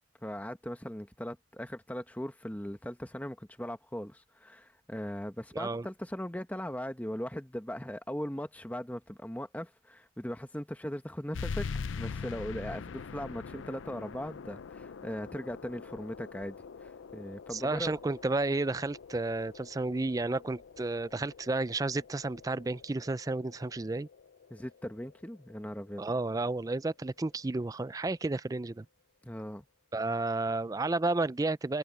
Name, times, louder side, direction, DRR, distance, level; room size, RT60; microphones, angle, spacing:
voice 1, 0.2-11.7 12.0-18.0 24.5-26.0 29.2-29.6, equal, 10° left, 1.1 m, -39 dB
voice 2, 5.5-5.9 17.5-24.1 26.0-28.9 29.9-31.8, right 2 dB, 20° right, 0.4 m, -32 dB
sound 1, 11.3-26.4, left 5 dB, 85° left, 0.5 m, -44 dB
head